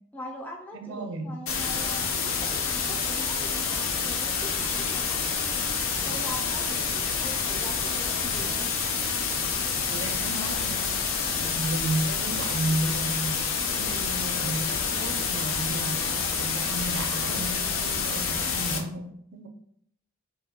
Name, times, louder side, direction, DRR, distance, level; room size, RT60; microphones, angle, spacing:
voice 1, 0.1-5.7 6.0-8.7, equal, 10° left, -1 dB, 0.4 m, -42 dB
voice 2, 0.7-1.4 9.9-10.9 11.4-19.5, right 2 dB, 65° right, 5 dB, 0.4 m, -33 dB
sound 1, 1.5-18.8, left 5 dB, 80° left, 0.5 m, -28 dB
2.8 x 2.2 x 3.5 m, 0.69 s
head